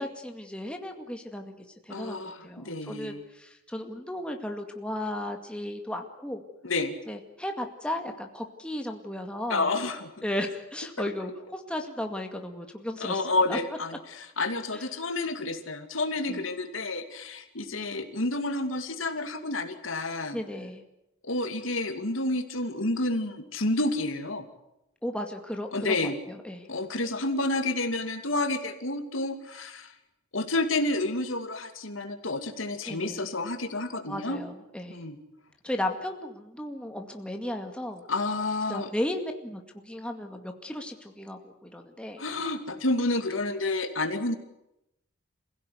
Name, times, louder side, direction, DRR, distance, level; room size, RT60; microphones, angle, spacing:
voice 1, 0.0-6.4 7.1-9.7 10.2-13.2 13.5-13.6 14.7-14.8 16.3-16.4 20.3-20.8 25.0-26.7 32.9-33.3 34.1-35.0 35.6-38.0 38.7-42.2, left 1 dB, 5° left, 3 dB, 2.1 m, -35 dB
voice 2, 1.9-3.2 6.6-6.9 9.5-10.1 13.0-20.4 21.3-24.5 25.7-26.2 26.7-29.9 30.3-34.4 34.9-35.2 38.1-38.9 42.2-44.4, left 2 dB, 80° left, 6 dB, 2.6 m, -30 dB
27.0 x 16.5 x 9.6 m, 0.88 s
head